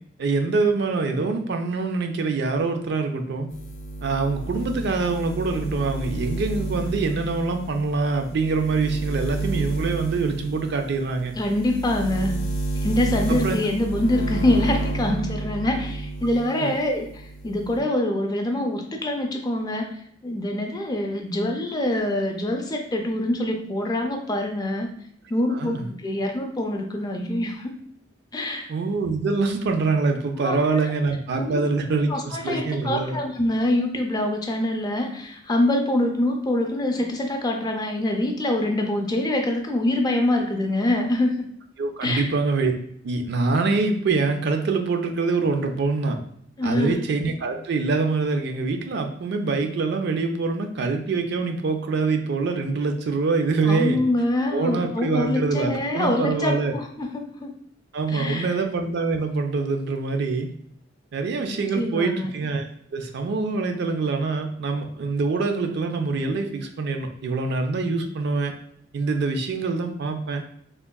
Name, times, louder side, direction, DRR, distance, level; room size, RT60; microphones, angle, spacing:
voice 1, 0.2-3.5 4.0-11.3 13.3-13.6 16.6-16.7 25.5-25.9 28.7-33.2 41.8-42.7 43.0-46.2 46.6-54.0 54.5-56.7 57.9-60.5 61.1-62.7 62.9-68.5 68.9-70.4, right 4 dB, 60° right, 5 dB, 0.4 m, -25 dB
sound 1, 3.5-16.5 16.8-17.8, right 2 dB, 90° left, 0.5 m, -31 dB
voice 2, 11.4-12.3 12.8-24.9 25.3-27.7 28.3-28.7 30.4-30.6 31.3-31.6 32.1-41.4 42.0-42.3 46.6-47.0 53.6-57.5 58.1-58.5 61.5-62.3, left 1 dB, 20° left, 3 dB, 0.3 m, -25 dB
3.5 x 2.2 x 2.2 m, 0.67 s
head